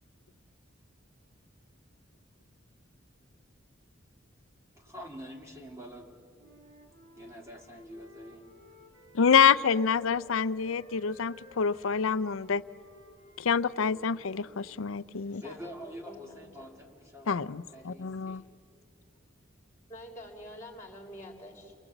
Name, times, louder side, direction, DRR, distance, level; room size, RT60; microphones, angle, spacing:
voice 1, 4.8-6.6 7.2-8.5 15.4-18.4, equal, 15° right, 1 dB, 2.1 m, -46 dB
Wind instrument woodwind instrument, 6.3-10.3 10.6-14.8, left 1 dB, 65° right, 4.4 m, -57 dB
voice 2, 9.1-12.6 13.4-15.4 17.3-18.4, left 6 dB, 80° left, 16 dB, 0.6 m, -26 dB
voice 3, 14.9-16.7 19.9-21.7, equal, 15° left, 2 dB, 3.3 m, -48 dB
29.0 x 23.5 x 8.0 m, 2.3 s
head